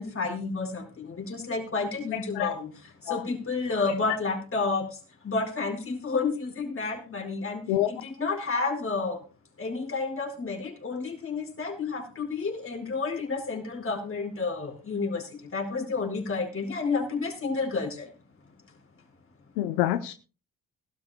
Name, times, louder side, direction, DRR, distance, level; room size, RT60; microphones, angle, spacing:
voice 1, 0.0-2.7 3.0-9.2 9.6-18.1, left 4 dB, 35° left, 2 dB, 4.8 m, -30 dB
voice 2, 2.1-2.5 3.1-3.2 3.9-4.0 7.7-7.9 19.6-20.1, left 13 dB, 90° left, 9 dB, 0.7 m, -27 dB
21.0 x 12.5 x 2.2 m, 0.33 s
supercardioid pair, 60°, 36 cm